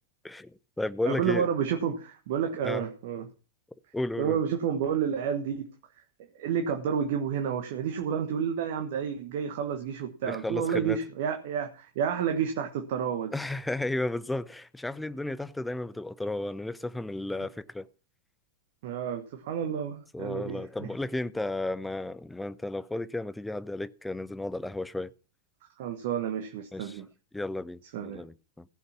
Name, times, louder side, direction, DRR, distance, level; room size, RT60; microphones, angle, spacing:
voice 1, 0.2-1.5 2.6-2.8 3.9-4.4 10.2-11.0 13.3-17.9 20.1-25.1 26.7-27.0 27.3-28.7, left 2 dB, 5° left, 0.6 m, -33 dB
voice 2, 1.0-3.3 4.2-5.7 6.2-13.3 18.8-20.9 25.8-27.1 27.9-28.2, right 8 dB, 50° right, 1.4 m, -30 dB
15.5 x 6.8 x 5.9 m
figure-of-eight pair, 90°, 0 cm